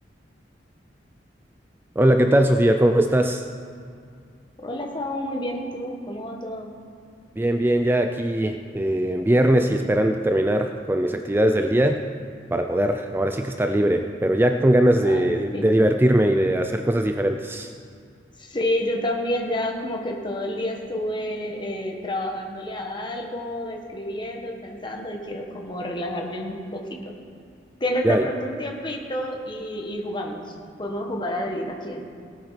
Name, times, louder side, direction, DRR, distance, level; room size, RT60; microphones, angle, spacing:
voice 1, 2.0-3.4 7.4-12.0 12.5-17.7 28.0-28.3, right 1 dB, 10° right, 5 dB, 0.4 m, -20 dB
voice 2, 4.6-6.7 15.0-15.6 18.4-26.8 27.8-32.1, left 1 dB, 25° left, 1 dB, 1.4 m, -29 dB
18.0 x 8.9 x 5.8 m, 2.3 s
head